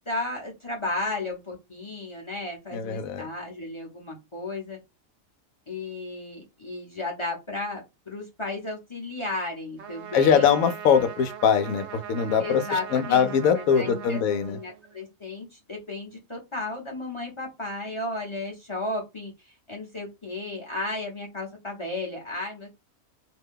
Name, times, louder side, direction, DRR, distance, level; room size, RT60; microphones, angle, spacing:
voice 1, 0.1-4.8 5.7-10.5 12.4-14.2 14.5-22.7, left 2 dB, 25° left, 0.7 m, -34 dB
voice 2, 2.7-3.3 10.1-14.6, left 7 dB, 90° left, 1.0 m, -22 dB
Trumpet, 9.8-15.1, right 9 dB, 65° right, 0.8 m, -40 dB
2.6 x 2.2 x 3.5 m
omnidirectional pair, 1.4 m